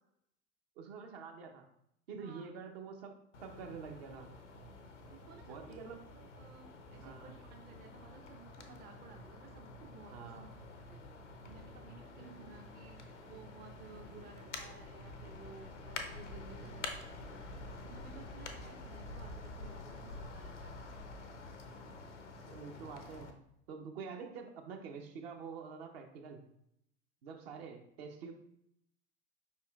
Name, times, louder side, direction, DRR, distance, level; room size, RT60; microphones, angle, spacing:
voice 1, 0.8-1.6 2.1-4.4 5.5-6.0 7.0-7.3 10.1-10.6 12.2-12.7 16.6-16.9 22.5-26.4 27.2-28.3, right 5 dB, 60° right, 3 dB, 0.8 m, -47 dB
voice 2, 2.1-2.5 5.1-5.8 6.2-10.4 10.9-11.0 11.5-13.0 13.2-17.3 17.5-20.8, right 4 dB, 30° right, 4 dB, 0.5 m, -56 dB
sound 1, 3.3-23.3, left 2 dB, 85° left, 0.6 m, -48 dB
4.9 x 4.3 x 2.3 m, 0.75 s
figure-of-eight pair, 70°, 35 cm